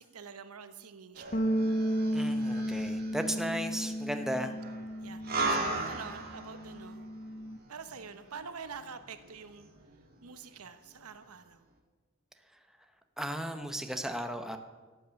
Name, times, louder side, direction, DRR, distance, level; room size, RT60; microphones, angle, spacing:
voice 1, 0.0-1.4 4.4-4.6 5.0-7.0 7.7-9.7 10.2-11.6, right 5 dB, 90° right, 10 dB, 1.0 m, -46 dB
sound 1, 1.2-10.6 11.0-11.1, right 2 dB, 45° right, 1.8 m, -39 dB
sound 2, 1.3-5.9 6.2-7.6, equal, 35° left, 0.7 m, -33 dB
voice 2, 2.1-4.6 13.2-14.6, equal, ahead, 6 dB, 0.8 m, -35 dB
13.5 x 8.5 x 7.0 m, 1.3 s
head